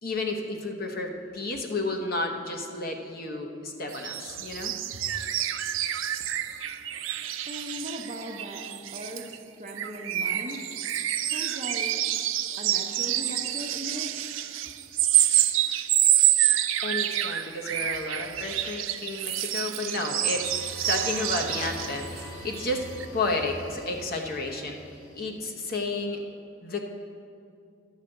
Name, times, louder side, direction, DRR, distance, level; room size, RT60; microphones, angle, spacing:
voice 1, 0.0-4.7 16.8-22.9 23.1-24.8 25.1-26.2 26.6-26.8, left 2 dB, 50° left, 2 dB, 0.9 m, -32 dB
sound 1, 3.9-9.4 9.7-22.3 22.5-22.7 23.0-23.1, right 12 dB, 90° right, 0.5 m, -28 dB
voice 2, 7.5-10.7 11.2-12.0 12.6-14.4, equal, 35° right, 2 dB, 0.9 m, -39 dB
sound 2, 20.1-25.8, equal, 80° left, 2.0 m, -43 dB
11.5 x 4.9 x 7.7 m, 2.5 s
head